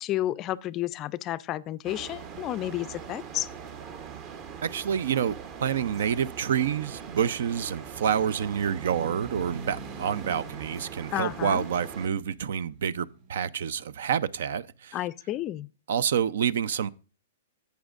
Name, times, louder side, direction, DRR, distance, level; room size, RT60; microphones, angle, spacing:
voice 1, 0.0-3.5 11.1-11.6 14.9-15.7, left 14 dB, 30° left, 0.4 m, -31 dB
sound 1, 1.8-12.1, right 7 dB, 35° right, 0.8 m, -42 dB
voice 2, 4.6-15.0 15.9-16.9, right 8 dB, 70° right, 0.4 m, -28 dB
sound 2, 7.0-14.5, right 4 dB, 55° right, 4.5 m, -46 dB
11.5 x 8.2 x 2.4 m
hypercardioid pair, 140°, 0 cm